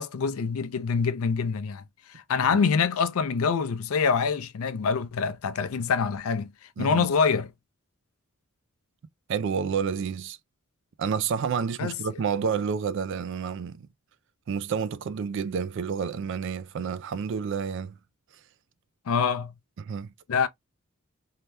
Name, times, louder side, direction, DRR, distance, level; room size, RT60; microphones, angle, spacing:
voice 1, 0.0-1.8 2.1-6.5 6.8-7.5 11.8-11.9 19.1-19.5 20.3-20.5, left 5 dB, 80° left, 0.4 m, -25 dB
voice 2, 9.3-10.4 11.0-13.9 14.5-17.9 19.8-20.1, right 6 dB, 60° right, 0.3 m, -29 dB
2.7 x 2.2 x 3.3 m
head